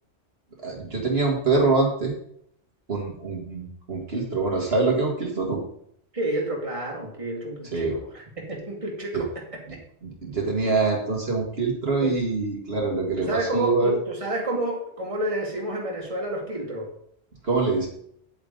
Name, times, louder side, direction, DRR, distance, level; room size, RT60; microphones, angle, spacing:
voice 1, 0.6-2.1 2.9-5.6 7.7-8.0 9.1-9.2 10.0-13.9 17.4-17.9, right 3 dB, 60° right, -1 dB, 2.0 m, -24 dB
voice 2, 6.1-9.8 12.0-12.1 13.2-16.9, right 1 dB, 30° right, -2 dB, 2.2 m, -30 dB
9.5 x 8.8 x 3.9 m, 0.69 s
omnidirectional pair, 1.2 m